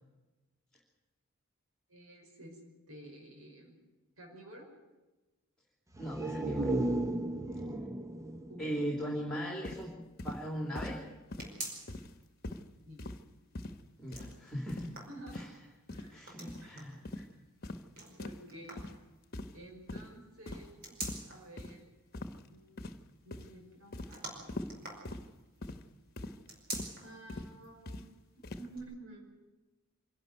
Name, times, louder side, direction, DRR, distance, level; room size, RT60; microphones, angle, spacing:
voice 1, 1.9-2.6 2.9-3.8 4.2-4.7 8.5-8.9 12.9-13.0 15.1-15.6 15.9-16.2 16.6-16.7 18.2-18.8 19.5-21.0 21.2-21.9 22.5-22.7 23.2-24.4 27.0-28.1 28.6-29.3, right 1 dB, 80° right, 2 dB, 5.6 m, -51 dB
sound 1, 5.9-9.7 10.0-10.1, right 1 dB, 15° right, 0.7 m, -35 dB
voice 2, 6.0-6.8 8.6-9.9 10.2-11.0 14.0-14.9 15.3-15.5 16.1-17.2, equal, 5° left, -1 dB, 3.0 m, -38 dB
sound 2, 9.6-9.8 10.2-10.4 10.7-11.0 11.3-11.5 11.9-12.2 12.4-12.6 13.0-13.2 13.5-13.8 14.1-14.3 14.7-14.9 15.3-15.5 15.9-16.1 16.5-16.6 17.0-17.3 17.6-17.8 18.2-18.4 18.8-19.0 19.3-19.6 19.9-20.1 20.5-20.7 21.0-21.2 21.6-21.7 22.1-22.4 22.8-23.1 23.3-23.5 23.9-24.1 24.5-24.7 25.0-25.2 25.6-25.8 26.2-26.4 26.7-26.9 27.3-27.5 27.8-28.0 28.4-28.7, left 2 dB, 45° left, 1.2 m, -42 dB
sound 3, 11.4-12.2 12.6-12.7 13.9-15.7 16.2-17.0 18.0-19.0 20.5-21.5 24.1-25.6 26.4-27.2 27.6-27.7 28.7-28.8, right 2 dB, 45° right, 5.0 m, -45 dB
25.0 x 12.0 x 9.5 m, 1.1 s
head